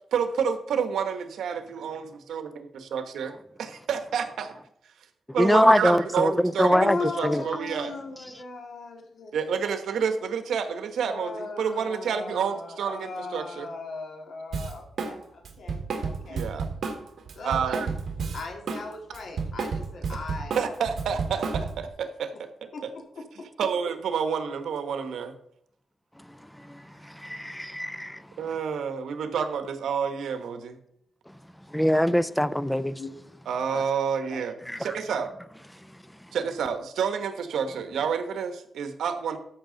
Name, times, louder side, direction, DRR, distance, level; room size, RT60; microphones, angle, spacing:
voice 1, 0.1-4.6 5.3-6.9 7.2-7.9 9.3-13.7 16.3-16.7 17.4-17.9 20.5-22.9 23.6-25.3 27.3-27.8 28.4-30.8 33.5-35.3 36.3-39.4, right 7 dB, 90° right, 1.0 m, -29 dB
voice 2, 5.4-6.3 6.6-7.0 7.2-7.4 27.2-28.2 31.7-32.9 34.7-34.8, equal, 5° left, 0.4 m, -22 dB
voice 3, 6.7-9.3 11.0-16.4 17.4-17.6 18.3-20.7 22.7-22.9 23.1-23.5 33.0-33.2 33.7-33.8 34.2-34.4, left 3 dB, 60° left, 2.0 m, -38 dB
Drum kit, 14.5-15.2 15.4-18.8 19.1-21.9, right 5 dB, 65° right, 1.7 m, -31 dB
13.5 x 5.9 x 3.8 m
wide cardioid pair, 125°, 0 cm